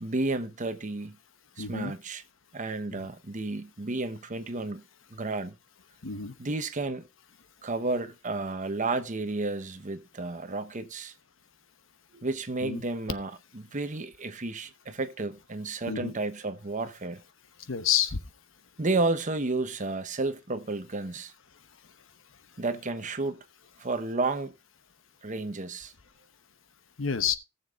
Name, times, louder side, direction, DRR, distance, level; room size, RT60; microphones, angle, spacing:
voice 1, 0.0-1.2 1.6-2.2 2.5-4.8 5.1-5.6 6.4-7.1 7.6-11.1 12.1-17.2 18.8-21.3 22.6-23.4 23.8-24.5 25.2-25.9, right 2 dB, 40° right, 1.0 m, -32 dB
voice 2, 1.6-1.9 2.9-3.1 6.0-6.3 12.6-12.8 15.9-16.1 17.7-18.2 27.0-27.3, left 8 dB, 75° left, 1.1 m, -29 dB
18.5 x 6.9 x 2.5 m
head